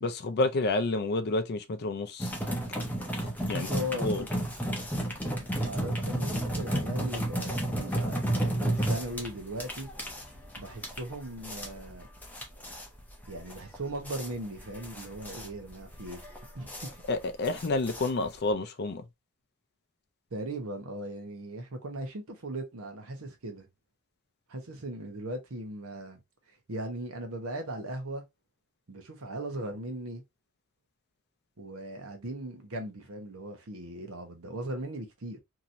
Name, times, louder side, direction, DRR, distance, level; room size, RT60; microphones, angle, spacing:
voice 1, 0.0-2.3 3.5-3.7 4.0-4.3 17.1-19.0, left 2 dB, 50° left, 0.5 m, -29 dB
sound 1, 2.2-18.5, right 1 dB, 10° left, 0.7 m, -33 dB
voice 2, 3.5-4.2 5.2-9.9 10.6-12.1 13.3-16.2 16.5-16.9 20.3-23.7 24.5-26.2 26.5-28.2 28.9-30.2 31.6-35.4, right 1 dB, 70° right, 0.9 m, -38 dB
3.0 x 2.8 x 2.5 m
head